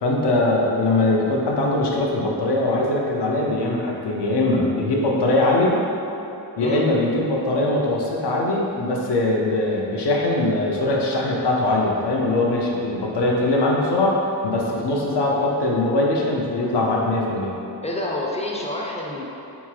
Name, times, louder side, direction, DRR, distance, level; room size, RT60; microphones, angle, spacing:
voice 1, 0.0-5.8 6.6-14.2 14.4-17.5, left 2 dB, 85° left, -2 dB, 0.7 m, -21 dB
voice 2, 17.8-19.2, left 1 dB, 20° left, -2 dB, 0.3 m, -28 dB
3.6 x 3.6 x 3.2 m, 2.9 s
wide cardioid pair, 155°, 40 cm